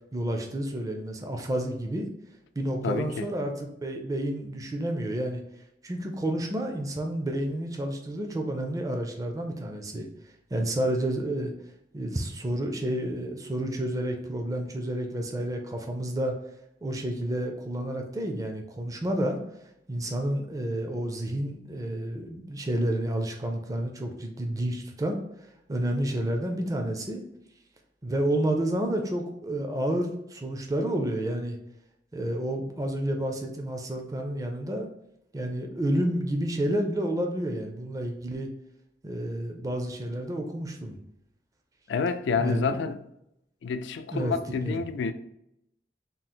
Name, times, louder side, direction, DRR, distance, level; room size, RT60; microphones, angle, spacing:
voice 1, 0.1-2.1 2.6-5.4 5.8-10.1 10.5-11.5 11.9-16.3 16.8-19.4 19.9-25.2 25.7-27.2 28.0-31.6 32.1-34.9 35.3-38.5 39.0-41.0 42.4-42.8 44.1-44.8, right 1 dB, 20° right, 0.4 m, -30 dB
voice 2, 2.8-3.3 41.9-43.0 43.6-45.1, left 5 dB, 80° left, 0.3 m, -28 dB
3.7 x 2.0 x 4.2 m
head